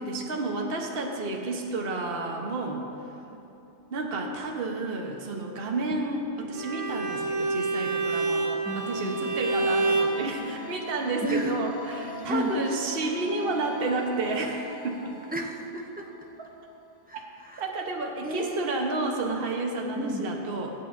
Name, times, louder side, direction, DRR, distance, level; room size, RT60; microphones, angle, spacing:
voice 1, 0.0-2.8 3.9-15.2 16.4-16.5 17.1-17.2 17.6-20.7, right 2 dB, 55° right, 1 dB, 1.2 m, -31 dB
Bowed string instrument, 6.5-10.2, right 3 dB, 75° right, 1.2 m, -27 dB
sound 1, 8.2-16.8, left 1 dB, 45° left, 1.0 m, -42 dB
voice 2, 8.6-9.3 11.2-11.6 12.3-12.6 15.3-16.1 17.1-17.6 18.2-18.9 20.0-20.3, equal, 10° right, 1 dB, 0.8 m, -32 dB
22.5 x 8.9 x 2.6 m, 2.9 s
omnidirectional pair, 1.2 m